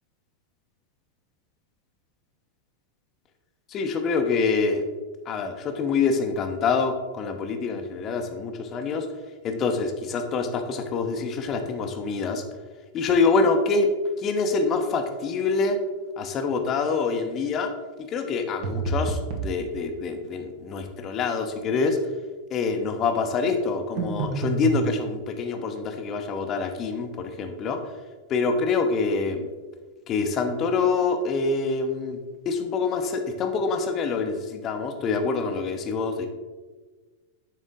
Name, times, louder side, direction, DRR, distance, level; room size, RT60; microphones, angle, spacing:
voice 1, 3.7-4.8 5.3-9.0 9.4-12.4 12.9-13.9 14.2-15.8 16.2-17.7 18.1-22.0 22.5-27.8 28.3-29.5 30.1-32.2 32.5-36.3, left 4 dB, 30° left, 5 dB, 0.9 m, -26 dB
sound 1, 18.6-19.5 24.0-24.8, right 4 dB, 45° right, 1.3 m, -27 dB
9.9 x 4.2 x 3.9 m, 1.3 s
figure-of-eight pair, 90°, 0 cm